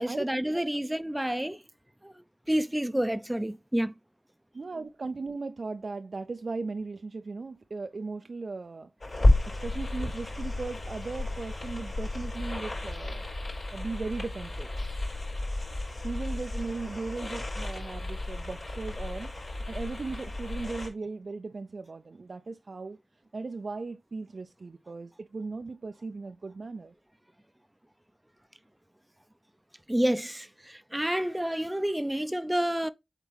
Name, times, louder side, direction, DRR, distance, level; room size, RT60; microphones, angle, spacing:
voice 1, 0.0-1.6 2.0-3.9 29.9-32.9, right 1 dB, 10° right, 0.5 m, -29 dB
voice 2, 4.5-8.9 9.5-13.2 13.7-14.7 16.0-19.3 19.7-23.0 23.3-26.9, right 3 dB, 75° right, 0.4 m, -37 dB
sound 1, 9.0-20.9, left 2 dB, 70° left, 4.8 m, -31 dB
8.1 x 4.1 x 3.4 m
wide cardioid pair, 75°, 0 cm